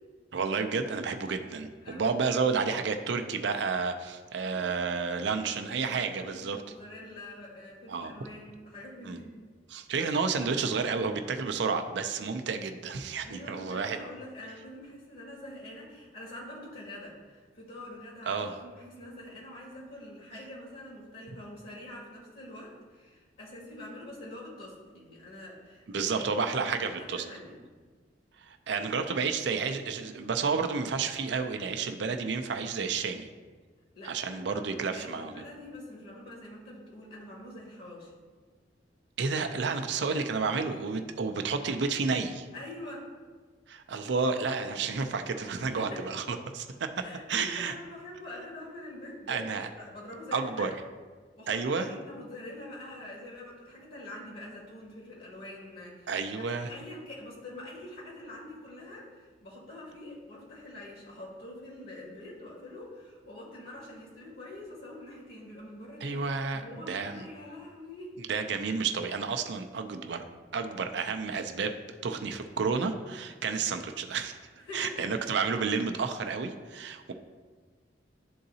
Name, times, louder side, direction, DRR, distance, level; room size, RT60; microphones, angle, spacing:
voice 1, 0.3-6.6 7.9-8.1 9.0-9.2 9.7-14.0 18.3-18.6 25.9-27.2 28.4-33.3 34.0-35.3 39.2-42.5 43.7-46.9 47.3-47.7 49.3-49.7 50.3-50.7 51.5-51.9 56.1-56.7 66.0-67.3 68.3-70.2 70.5-71.8 72.0-74.4 74.7-77.1, right 5 dB, 65° right, 6 dB, 0.5 m, -31 dB
voice 2, 1.8-2.3 4.4-4.7 5.0-9.3 13.2-27.6 34.0-38.1 42.5-43.1 45.6-46.1 47.0-50.7 51.3-66.2 66.5-68.2 74.5-75.1, left 1 dB, 60° left, -3 dB, 1.9 m, -45 dB
11.0 x 3.8 x 2.7 m, 1.4 s
head